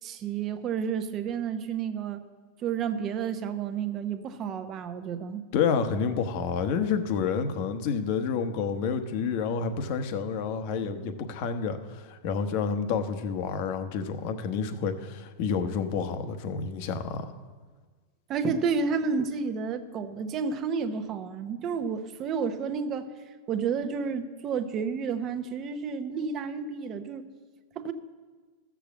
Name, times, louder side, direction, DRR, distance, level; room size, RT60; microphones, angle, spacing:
voice 1, 0.0-2.2 2.6-5.4 18.3-23.1 23.5-27.3 27.7-27.9, right 6 dB, 35° right, 9 dB, 0.9 m, -31 dB
voice 2, 5.5-17.3, left 6 dB, 55° left, 8 dB, 1.0 m, -29 dB
13.5 x 7.2 x 7.1 m, 1.4 s
supercardioid pair, 130°, 0 cm